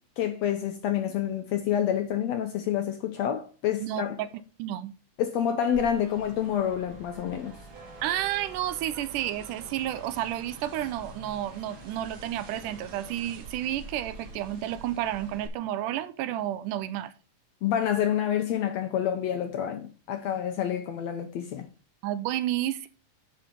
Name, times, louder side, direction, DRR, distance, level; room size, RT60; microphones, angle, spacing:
voice 1, 0.2-4.2 5.2-7.5 17.6-21.7, left 9 dB, 80° left, 1.6 m, -28 dB
voice 2, 3.8-4.3 4.6-4.9 8.0-17.1 22.0-22.9, right 12 dB, 80° right, 2.1 m, -31 dB
sound 1, 5.7-15.5, right 3 dB, 60° right, 3.0 m, -46 dB
10.5 x 4.3 x 5.2 m
omnidirectional pair, 3.8 m